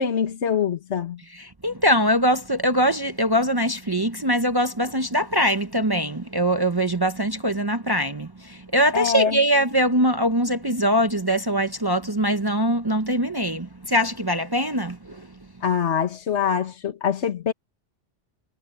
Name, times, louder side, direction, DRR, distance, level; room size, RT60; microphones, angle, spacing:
voice 1, 0.0-1.2 8.9-9.4 15.6-17.5, left 7 dB, 70° left, 1.6 m, -24 dB
voice 2, 1.3-15.3, equal, 25° right, 0.7 m, -22 dB
omnidirectional pair, 1.2 m